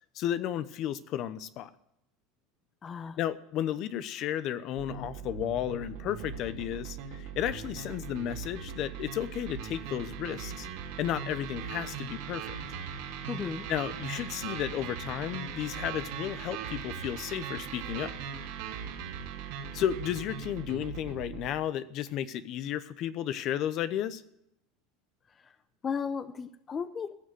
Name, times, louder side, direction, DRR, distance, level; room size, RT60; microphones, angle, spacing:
voice 1, 0.1-1.7 3.2-10.7 11.0-12.5 13.7-18.1 19.7-24.2, left 11 dB, 50° left, 14 dB, 0.8 m, -33 dB
voice 2, 2.8-3.2 13.3-13.7 25.4-25.5 25.8-27.2, left 6 dB, 25° left, 12 dB, 0.7 m, -35 dB
sound 1, 4.8-21.5, right 7 dB, 75° right, 2.9 m, -39 dB
16.0 x 6.5 x 9.5 m, 0.78 s
supercardioid pair, 125°, 0 cm